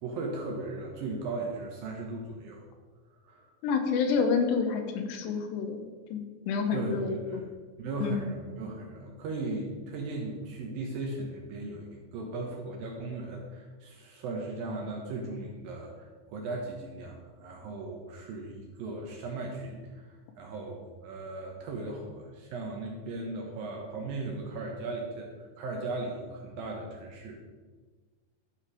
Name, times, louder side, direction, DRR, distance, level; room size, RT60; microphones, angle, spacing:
voice 1, 0.0-2.6 3.2-3.5 6.7-7.4 7.8-27.4, right 2 dB, 70° right, 0 dB, 2.4 m, -37 dB
voice 2, 3.6-7.2 8.0-8.4, left 5 dB, 85° left, 5 dB, 2.9 m, -29 dB
12.5 x 5.1 x 4.9 m, 1.4 s
omnidirectional pair, 5.0 m